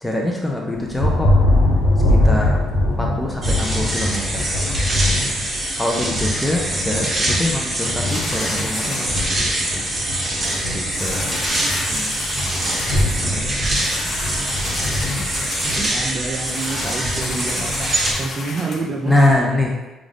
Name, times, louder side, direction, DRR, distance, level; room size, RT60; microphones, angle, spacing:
voice 1, 0.0-1.3 2.1-4.5 5.8-9.5 9.7-9.8 10.7-11.3 13.1-14.2 19.1-19.7, left 1 dB, 5° left, -2 dB, 0.6 m, -24 dB
Thunder, 0.7-18.2, left 1 dB, 90° left, 0.7 m, -23 dB
sound 1, 3.4-18.1, right 1 dB, 25° right, 1.0 m, -24 dB
sound 2, 8.1-19.3, left 4 dB, 60° left, 0.4 m, -33 dB
voice 2, 11.6-12.2 13.0-13.6 15.6-19.4, right 3 dB, 40° right, -2 dB, 0.5 m, -29 dB
3.9 x 2.4 x 3.4 m, 1.0 s
supercardioid pair, 80°, 0 cm